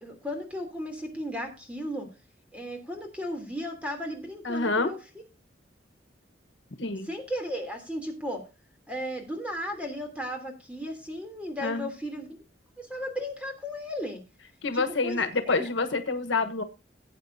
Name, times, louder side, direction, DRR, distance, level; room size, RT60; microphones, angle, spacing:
voice 1, 0.0-2.1 2.5-5.0 7.1-8.4 8.9-12.3 12.8-14.2 14.7-15.2 15.5-15.6, equal, 5° right, 3 dB, 3.0 m, -35 dB
voice 2, 4.4-4.9 6.8-7.1 11.6-11.9 14.6-16.6, left 3 dB, 80° left, 9 dB, 1.2 m, -27 dB
17.5 x 8.6 x 2.7 m, 0.29 s
head